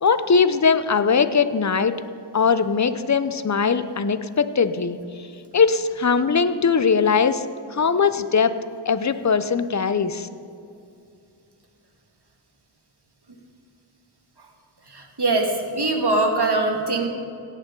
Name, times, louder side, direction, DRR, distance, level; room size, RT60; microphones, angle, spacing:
voice 1, 0.0-1.9 2.3-5.0 5.5-7.4 7.7-8.5 8.9-10.3, left 5 dB, 35° left, 12 dB, 0.6 m, -20 dB
voice 2, 14.9-17.1, right 2 dB, 50° right, 2 dB, 1.9 m, -22 dB
17.0 x 9.1 x 3.8 m, 2.5 s
wide cardioid pair, 45°, 49 cm